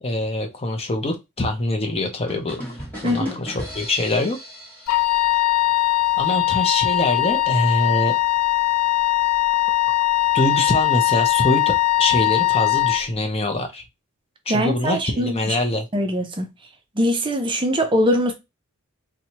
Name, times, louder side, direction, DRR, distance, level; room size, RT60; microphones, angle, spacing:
voice 1, 0.0-2.6 3.0-4.4 6.2-8.2 10.3-11.7 12.0-13.8 14.5-15.9, left 1 dB, 25° left, 0.6 m, -24 dB
sound 1, 2.3-6.0, equal, 10° left, 1.4 m, -37 dB
voice 2, 3.0-3.3 14.5-15.6 15.9-16.5 17.0-18.3, equal, 20° right, 0.5 m, -22 dB
Wind instrument woodwind instrument, 4.9-13.1, left 17 dB, 80° left, 0.3 m, -20 dB
4.3 x 2.2 x 2.8 m
head